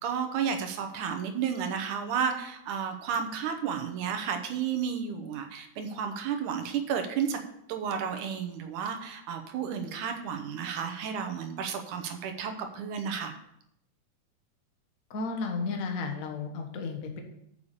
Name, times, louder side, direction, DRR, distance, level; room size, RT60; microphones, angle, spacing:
voice 1, 0.0-7.4 7.7-13.3, right 7 dB, 80° right, 6 dB, 2.4 m, -32 dB
voice 2, 15.1-17.2, left 4 dB, 55° left, 3 dB, 0.9 m, -33 dB
7.2 x 6.7 x 6.6 m, 0.76 s
omnidirectional pair, 3.6 m